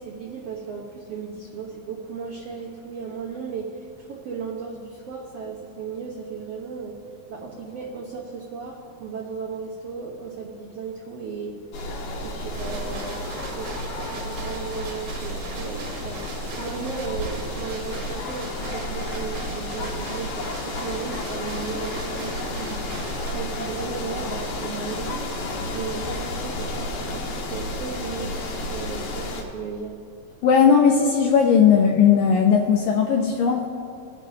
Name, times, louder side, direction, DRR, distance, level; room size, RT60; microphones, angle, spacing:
voice 1, 0.0-7.0 7.3-11.6 12.2-16.2 16.5-22.8 23.3-25.3 25.7-29.9, right 5 dB, 80° right, -4 dB, 1.4 m, -35 dB
sound 1, 11.7-29.4, left 1 dB, 60° left, 2.2 m, -31 dB
sound 2, 12.5-23.3, right 4 dB, 65° right, 2.2 m, -40 dB
voice 2, 30.4-33.6, left 7 dB, 80° left, 1 dB, 2.0 m, -17 dB
20.5 x 11.0 x 2.8 m, 2.5 s
omnidirectional pair, 4.7 m